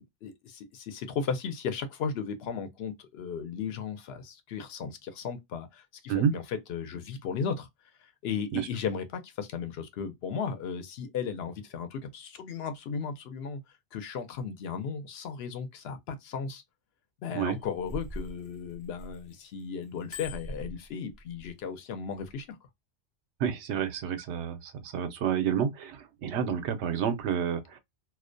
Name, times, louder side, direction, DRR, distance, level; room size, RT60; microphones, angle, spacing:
voice 1, 0.0-7.7 8.0-13.6 13.9-16.6 17.2-22.6, left 6 dB, 70° left, 0.8 m, -35 dB
Bicycle bell, 17.5-19.4 19.8-21.5 22.1-22.3, left 1 dB, 35° left, 0.5 m, -42 dB
voice 2, 23.4-27.8, right 8 dB, 85° right, 0.9 m, -29 dB
2.3 x 2.1 x 2.5 m
omnidirectional pair, 1.1 m